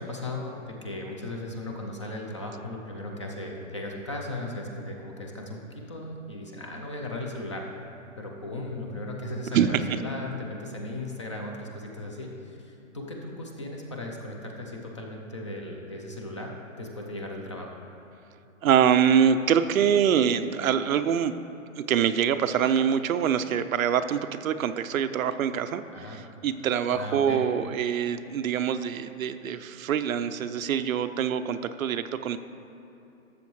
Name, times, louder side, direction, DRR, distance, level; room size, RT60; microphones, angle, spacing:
voice 1, 0.0-7.7 8.2-17.7 25.9-26.2 26.9-27.4, left 1 dB, 25° left, 1 dB, 0.4 m, -37 dB
voice 2, 9.5-9.8 18.6-21.3 21.8-32.4, right 8 dB, 85° right, 10 dB, 0.6 m, -25 dB
13.0 x 7.0 x 3.1 m, 2.9 s
hypercardioid pair, 160°, 40 cm